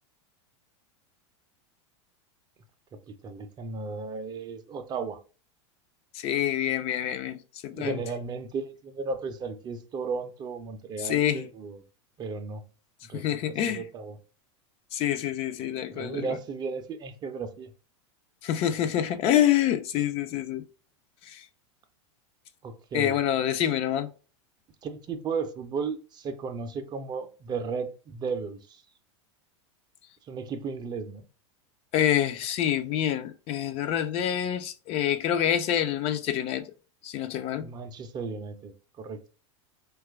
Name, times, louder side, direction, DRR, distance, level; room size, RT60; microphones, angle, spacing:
voice 1, 3.1-5.2 7.7-11.8 12.2-12.6 13.0-14.2 15.9-17.7 22.6-23.2 24.8-28.8 30.3-31.2 37.6-39.3, right 5 dB, 25° right, 0.4 m, -35 dB
voice 2, 6.1-8.0 11.0-11.5 13.1-13.8 14.9-16.4 18.4-20.6 21.2-21.5 22.9-24.1 31.9-36.7 37.0-37.7, left 11 dB, 40° left, 0.4 m, -27 dB
2.9 x 2.3 x 3.4 m
hypercardioid pair, 110°, 16 cm